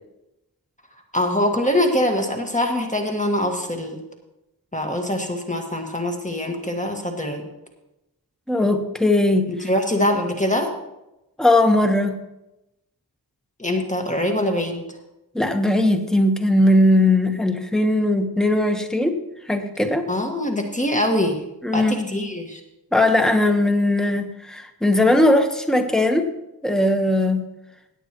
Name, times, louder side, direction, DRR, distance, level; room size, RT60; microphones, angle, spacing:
voice 1, 1.1-4.0 4.7-7.5 9.5-10.7 13.6-14.9 20.1-21.4 21.7-22.6, left 1 dB, 20° left, 2 dB, 1.6 m, -23 dB
voice 2, 8.5-9.5 11.4-12.2 15.3-19.2 19.5-20.1 21.6-22.1 22.9-26.3 26.6-27.4, left 1 dB, ahead, 5 dB, 1.1 m, -19 dB
17.5 x 9.1 x 3.0 m, 0.91 s
wide cardioid pair, 65°, 39 cm